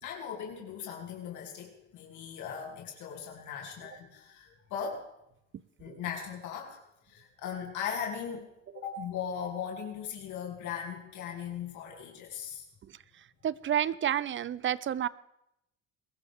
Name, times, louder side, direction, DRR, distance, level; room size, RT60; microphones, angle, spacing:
voice 1, 0.0-5.1 5.8-6.8 7.1-8.4 8.7-12.6, left 7 dB, 75° left, -1 dB, 2.9 m, -38 dB
voice 2, 13.4-15.1, right 10 dB, 40° right, 20 dB, 0.6 m, -29 dB
22.0 x 13.5 x 3.6 m, 0.83 s
supercardioid pair, 90°, 30 cm